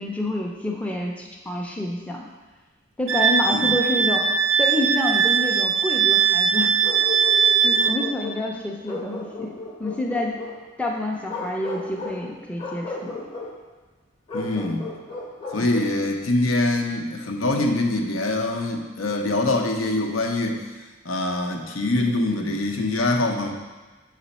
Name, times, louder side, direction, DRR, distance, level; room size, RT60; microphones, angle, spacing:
voice 1, 0.0-2.3 3.0-6.7 7.6-9.5 9.8-10.3 10.8-13.3 15.6-15.8, left 1 dB, 5° left, -1 dB, 0.5 m, -28 dB
Wind instrument woodwind instrument, 3.1-8.0, right 7 dB, 75° right, 0.4 m, -20 dB
Bark, 6.8-8.4 8.9-10.6 11.2-12.2 12.6-13.5 14.3-16.0, left 2 dB, 25° left, 0.8 m, -34 dB
voice 2, 14.3-14.9 15.5-20.6 21.0-23.5, left 2 dB, 80° left, 3 dB, 0.7 m, -24 dB
6.1 x 4.1 x 4.1 m, 1.3 s
head